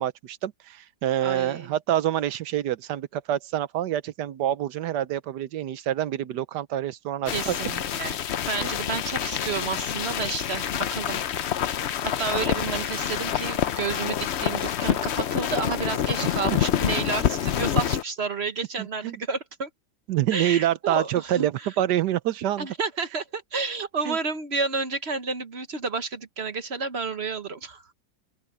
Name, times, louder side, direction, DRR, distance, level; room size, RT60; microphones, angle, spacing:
voice 1, 0.0-7.5 8.6-8.7 18.8-19.2 20.1-22.7 24.1-24.2, right 12 dB, 90° right, 1.4 m, -27 dB
voice 2, 1.2-1.7 7.3-8.2 8.5-11.2 11.7-19.7 20.3-21.7 22.6-27.9, right 4 dB, 45° right, 1.2 m, -31 dB
sound 1, 7.3-18.0, left 10 dB, 55° left, 0.7 m, -27 dB
open air
omnidirectional pair, 1.8 m